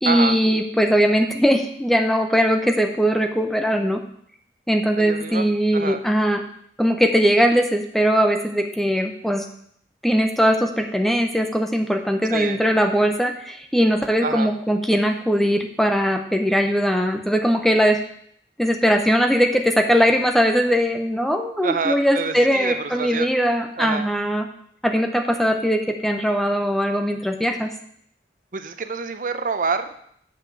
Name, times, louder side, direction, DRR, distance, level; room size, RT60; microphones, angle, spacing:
voice 1, 0.0-4.0 4.7-6.4 6.8-9.5 10.0-18.0 18.6-24.5 24.8-27.7, equal, ahead, 5 dB, 0.7 m, -20 dB
voice 2, 5.0-5.4 5.7-6.0 12.3-12.6 14.2-14.5 21.6-23.3 23.8-24.1 28.5-30.0, right 5 dB, 50° right, 9 dB, 0.6 m, -27 dB
7.1 x 5.8 x 7.0 m, 0.66 s
head